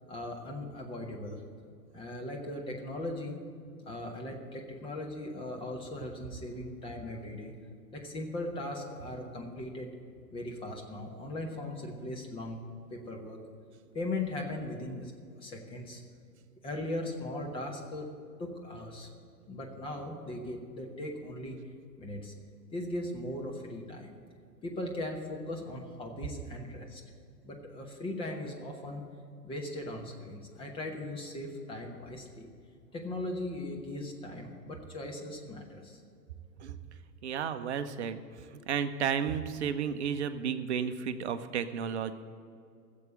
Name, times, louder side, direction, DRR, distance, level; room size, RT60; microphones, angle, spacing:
voice 1, 0.1-1.4 1.9-3.4 3.8-7.5 7.9-9.9 10.3-12.6 12.9-13.4 13.9-15.1 15.4-16.0 16.6-18.1 18.4-19.1 19.5-21.6 22.0-22.3 22.7-24.2 24.6-27.0 27.4-29.0 29.4-32.5 32.9-36.0, left 1 dB, 10° left, 2 dB, 1.0 m, -38 dB
voice 2, 37.2-38.2 38.7-42.1, right 7 dB, 40° right, 9 dB, 0.8 m, -32 dB
15.0 x 7.5 x 7.7 m, 2.4 s
figure-of-eight pair, 120°, 50 cm